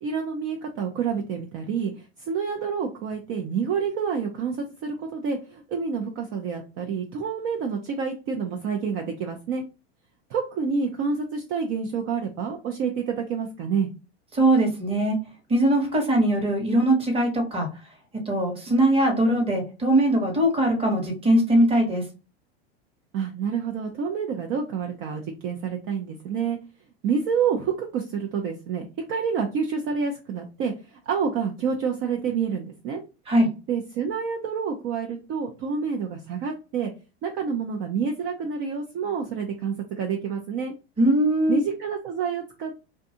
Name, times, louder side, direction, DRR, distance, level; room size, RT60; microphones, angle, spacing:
voice 1, 0.0-9.6 10.3-13.9 23.1-26.6 27.0-33.0 33.7-36.9 37.2-40.7 41.5-42.8, right 6 dB, 45° right, 2 dB, 0.5 m, -28 dB
voice 2, 14.3-15.2 15.5-17.7 18.3-22.0 33.3-33.5 41.0-41.6, right 1 dB, 20° right, 3 dB, 1.0 m, -21 dB
2.6 x 2.2 x 2.7 m, 0.31 s
supercardioid pair, 115°, 31 cm